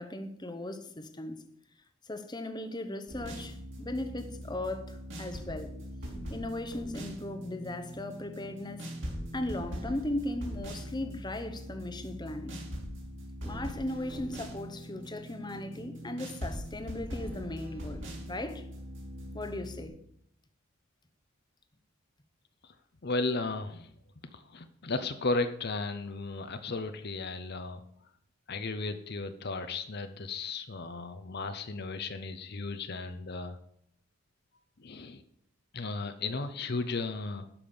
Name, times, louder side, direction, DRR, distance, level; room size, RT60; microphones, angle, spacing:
voice 1, 0.0-1.4 2.0-5.7 6.3-8.9 9.3-12.6 13.4-18.0 18.3-18.7 19.3-19.9, left 1 dB, 20° left, 0.9 m, -37 dB
sound 1, 3.1-19.9, equal, 60° right, 4.0 m, -41 dB
voice 2, 23.0-23.9 24.3-27.8 28.5-33.6 34.8-35.2 35.7-37.6, left 3 dB, 50° left, 0.7 m, -35 dB
12.0 x 5.7 x 7.0 m
head